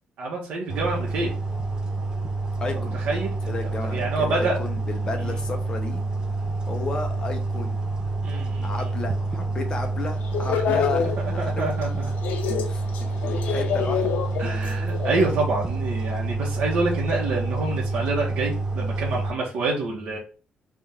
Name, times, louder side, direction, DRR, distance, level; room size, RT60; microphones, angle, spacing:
voice 1, 0.2-1.3 2.7-3.5 3.9-4.6 5.2-5.4 8.2-8.9 10.5-10.8 11.2-12.1 12.5-12.6 13.7-13.8 14.4-20.2, right 3 dB, 80° right, -3 dB, 1.0 m, -27 dB
sound 1, 0.7-19.3, right 3 dB, 25° right, 0.4 m, -28 dB
voice 2, 2.6-3.0 3.5-6.0 6.7-7.8 8.6-11.7 12.6-14.1, left 3 dB, 30° left, 4 dB, 0.7 m, -33 dB
sound 2, 10.3-11.8 12.1-15.3, left 7 dB, 80° left, 0.5 m, -27 dB
3.5 x 2.4 x 4.2 m, 0.37 s
cardioid pair, 165°, 3 cm